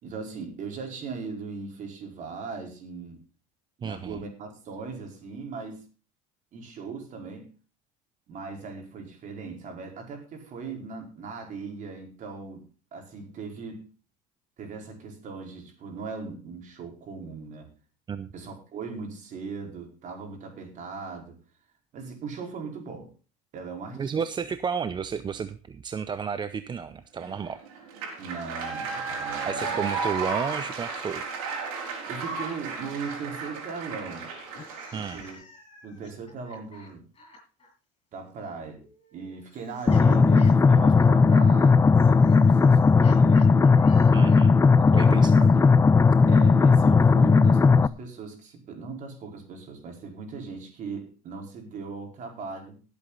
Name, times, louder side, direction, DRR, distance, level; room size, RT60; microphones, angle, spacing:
voice 1, 0.0-3.2 3.8-5.8 6.5-7.5 8.3-13.9 14.6-17.7 18.3-21.4 21.9-23.1 23.5-24.2 28.2-29.8 32.1-34.3 34.9-35.4 35.8-37.0 38.1-38.8 39.1-43.8 44.8-45.7 46.3-52.8, right 4 dB, 45° right, 3 dB, 4.7 m, -39 dB
voice 2, 3.8-4.2 18.1-18.3 23.9-27.6 29.4-31.2 34.9-35.2 44.1-44.6 44.9-45.5, right 6 dB, 25° right, 13 dB, 0.7 m, -32 dB
sound 1, 27.2-35.3, right 4 dB, 90° right, 4.8 m, -34 dB
sound 2, 34.4-37.7 38.7-44.6, left 3 dB, 30° left, 7.7 m, -52 dB
sound 3, 39.9-47.9, left 4 dB, 15° left, 0.5 m, -17 dB
18.0 x 8.4 x 4.0 m, 0.34 s
supercardioid pair, 115°, 18 cm